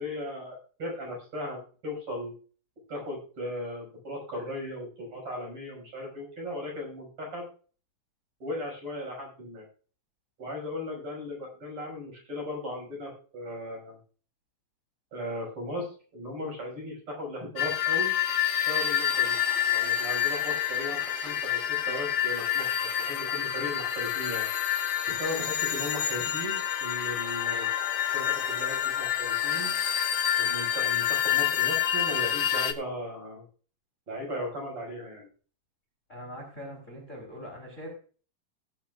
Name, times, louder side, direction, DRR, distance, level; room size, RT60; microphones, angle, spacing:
voice 1, 0.0-2.3 2.9-7.5 8.4-9.6 10.4-14.0 15.1-18.1 18.7-19.4 19.7-24.5 25.1-27.7 28.1-29.7 30.4-33.4 34.1-35.3, left 1 dB, 35° right, -1 dB, 6.9 m, -37 dB
sound 1, 17.6-32.7, left 10 dB, 90° left, 1.5 m, -28 dB
voice 2, 36.1-37.9, equal, 20° left, 1 dB, 3.5 m, -42 dB
18.5 x 9.8 x 2.5 m, 0.39 s
omnidirectional pair, 4.8 m